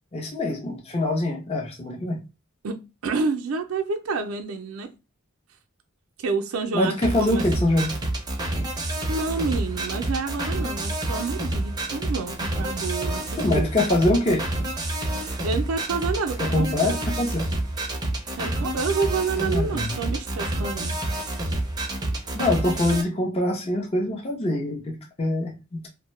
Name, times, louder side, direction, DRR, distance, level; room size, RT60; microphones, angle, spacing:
voice 1, 0.1-2.2 6.7-8.0 13.4-14.5 16.4-17.5 19.4-20.0 22.3-25.9, left 1 dB, 30° left, 0.6 m, -24 dB
voice 2, 2.6-4.9 6.2-7.4 9.1-13.2 13.5-13.7 15.4-17.0 18.4-21.0, right 4 dB, 85° right, 0.4 m, -29 dB
sound 1, 7.0-23.0, right 1 dB, 20° right, 0.5 m, -28 dB
2.6 x 2.1 x 3.0 m
head